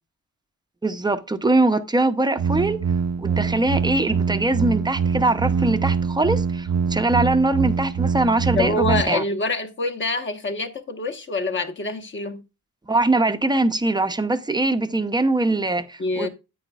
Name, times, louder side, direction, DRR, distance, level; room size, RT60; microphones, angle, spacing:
voice 1, 0.8-2.8 3.2-9.2 12.9-16.3, right 2 dB, 15° right, 0.6 m, -22 dB
sound 1, 2.4-9.0, right 6 dB, 55° right, 0.6 m, -24 dB
voice 2, 8.5-12.4 16.0-16.3, left 2 dB, 35° left, 1.2 m, -26 dB
9.2 x 8.9 x 2.3 m
cardioid pair, 130°, 33 cm